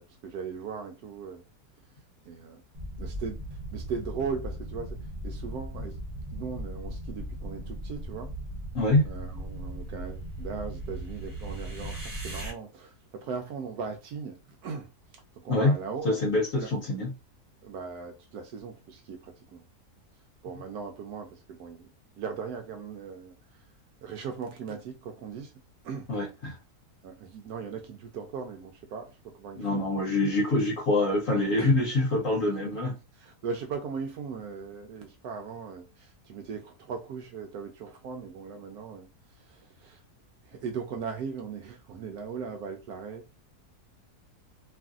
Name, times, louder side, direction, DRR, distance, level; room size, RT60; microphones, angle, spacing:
voice 1, 0.0-1.4 2.3-2.6 3.0-5.0 5.2-6.0 6.3-8.3 9.0-16.2 16.5-16.7 17.6-19.6 20.4-21.9 22.2-23.6 24.0-25.5 25.8-26.1 27.0-29.9 31.6-31.7 33.2-40.0 40.4-43.2, right 5 dB, 75° right, 1.1 m, -38 dB
sound 1, 2.7-12.5, right 1 dB, 25° right, 1.0 m, -38 dB
voice 2, 16.0-17.1 20.5-20.6 26.1-26.6 29.6-33.0, left 2 dB, 60° left, 1.1 m, -25 dB
3.1 x 2.5 x 2.4 m
omnidirectional pair, 1.7 m